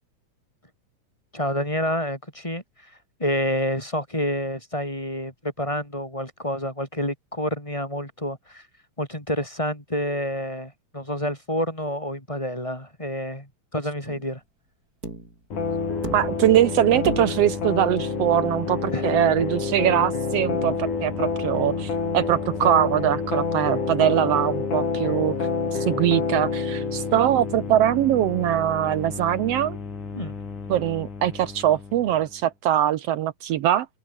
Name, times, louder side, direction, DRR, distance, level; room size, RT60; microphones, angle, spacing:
voice 1, 1.3-8.7 9.0-14.4 18.9-19.1 30.1-30.3, equal, 10° left, 5.9 m, -28 dB
sound 1, 14.1-14.4 15.0-15.4 16.0-16.6 17.0-17.6 18.9-19.0, right 2 dB, 25° right, 7.3 m, -35 dB
sound 2, 15.5-32.3, left 5 dB, 60° left, 6.6 m, -28 dB
voice 2, 16.1-25.3 25.7-29.8 30.7-33.9, right 11 dB, 90° right, 1.4 m, -22 dB
omnidirectional pair, 4.0 m